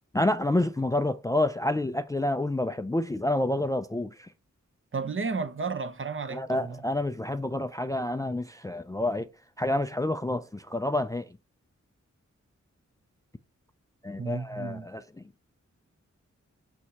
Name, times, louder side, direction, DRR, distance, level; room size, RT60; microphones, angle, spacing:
voice 1, 0.1-4.3 6.3-9.3 9.6-11.3 14.0-15.3, left 1 dB, 10° left, 0.4 m, -28 dB
voice 2, 4.9-6.8 14.2-14.9, right 4 dB, 40° right, 0.7 m, -33 dB
6.3 x 5.3 x 2.9 m
cardioid pair, 40°, 30 cm